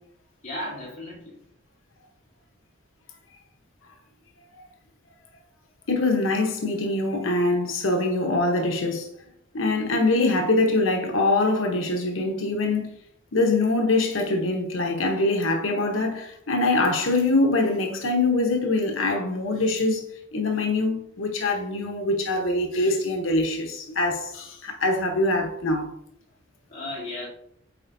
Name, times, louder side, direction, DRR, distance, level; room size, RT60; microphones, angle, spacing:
voice 1, 0.4-1.4 26.7-27.3, left 1 dB, 40° left, 2.6 m, -34 dB
voice 2, 5.9-9.1 9.5-13.0 13.3-20.0 20.3-25.9, left 2 dB, 85° left, 0.9 m, -23 dB
8.7 x 4.4 x 2.6 m
head